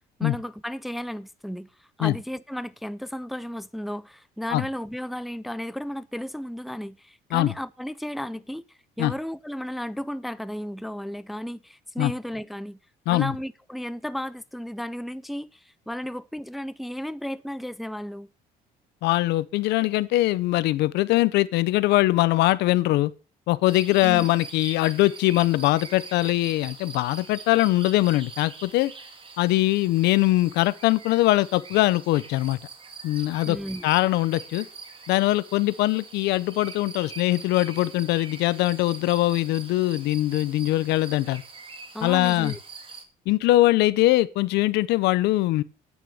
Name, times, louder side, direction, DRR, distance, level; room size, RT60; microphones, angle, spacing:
voice 1, 0.2-12.8 13.1-18.3 24.0-24.3 33.4-33.9 41.9-42.6, equal, ahead, 0.4 m, -34 dB
voice 2, 19.0-23.1 23.5-28.9 29.4-32.6 33.0-33.6 33.8-34.7 35.1-41.4 42.0-42.5 43.3-45.6, left 17 dB, 85° left, 0.7 m, -22 dB
sound 1, 23.6-43.0, right 4 dB, 30° right, 1.9 m, -43 dB
9.2 x 6.1 x 6.4 m
cardioid pair, 110°, 17 cm